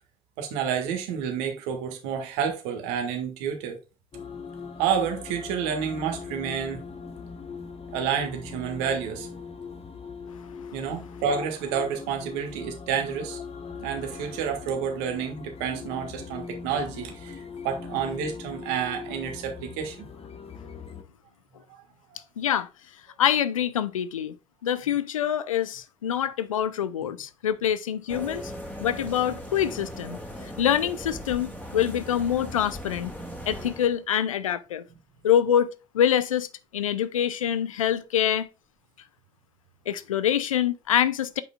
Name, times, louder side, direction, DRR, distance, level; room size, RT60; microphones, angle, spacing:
voice 1, 0.4-3.8 4.8-6.8 7.9-9.3 10.7-13.4 13.8-17.4 17.6-20.1 21.7-21.8 27.0-27.1, right 7 dB, 70° right, 1.7 m, -29 dB
sound 1, 4.1-21.0, left 5 dB, 35° left, 1.2 m, -41 dB
voice 2, 22.4-22.7 23.2-24.4 24.6-28.5 28.8-30.2 30.4-33.1 33.5-34.8 35.2-36.5 36.7-38.5 39.9-41.4, left 10 dB, 90° left, 0.5 m, -25 dB
sound 2, 28.1-34.0, equal, 10° left, 2.4 m, -38 dB
9.2 x 5.2 x 2.3 m
hypercardioid pair, 50°, 17 cm